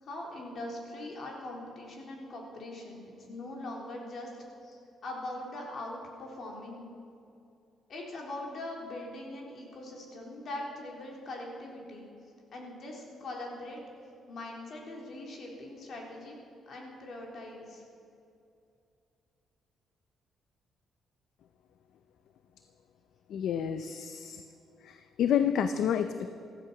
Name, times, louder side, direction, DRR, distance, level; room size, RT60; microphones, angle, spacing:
voice 1, 0.0-4.3 4.6-7.0 7.9-12.1 12.5-13.8 14.3-16.3 16.7-17.8, left 1 dB, 55° left, -1 dB, 4.0 m, -41 dB
voice 2, 23.3-24.4 24.8-26.3, left 8 dB, 75° left, 10 dB, 0.6 m, -29 dB
16.0 x 14.5 x 5.9 m, 2.6 s
cardioid pair, 90°, 0 cm